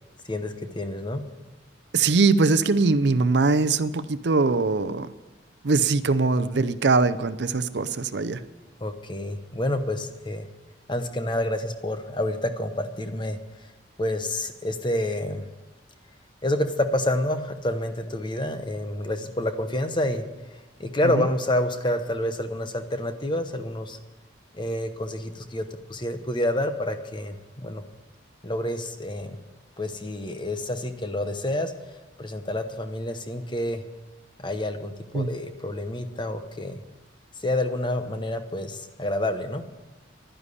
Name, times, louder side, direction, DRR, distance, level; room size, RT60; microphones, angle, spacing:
voice 1, 0.3-1.2 8.8-10.5 10.9-13.4 14.0-15.5 16.4-20.2 20.8-24.0 24.5-27.8 28.4-29.4 29.8-31.7 32.2-33.8 34.4-36.8 37.4-39.6, left 1 dB, 25° left, 8 dB, 0.9 m, -28 dB
voice 2, 1.9-5.1 5.6-8.4 35.1-35.3, right 3 dB, 60° right, 14 dB, 0.5 m, -22 dB
11.5 x 10.5 x 8.3 m, 1.1 s
head